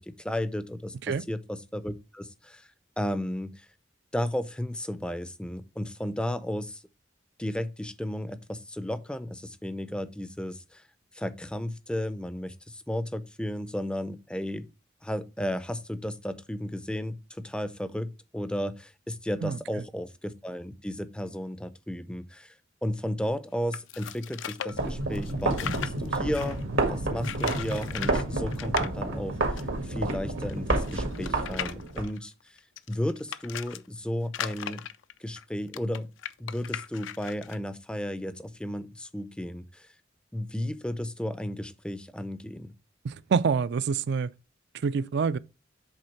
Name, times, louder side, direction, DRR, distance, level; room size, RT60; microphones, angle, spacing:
voice 1, 0.0-2.7 3.0-3.7 4.1-6.8 7.4-10.8 11.1-14.7 15.0-22.5 22.8-26.6 26.9-32.3 32.9-34.9 35.2-36.1 36.4-39.9 40.3-42.7, left 1 dB, 5° left, 0.4 m, -34 dB
sound 1, 23.7-26.6 27.2-28.2 28.5-28.9 29.6-29.7 29.9-30.0 30.5-33.8 34.3-37.6, left 9 dB, 75° left, 0.4 m, -38 dB
sound 2, 24.7-32.1, right 2 dB, 85° right, 1.7 m, -29 dB
voice 2, 43.0-44.3 44.8-45.4, right 5 dB, 60° right, 0.4 m, -26 dB
7.9 x 3.5 x 4.5 m
head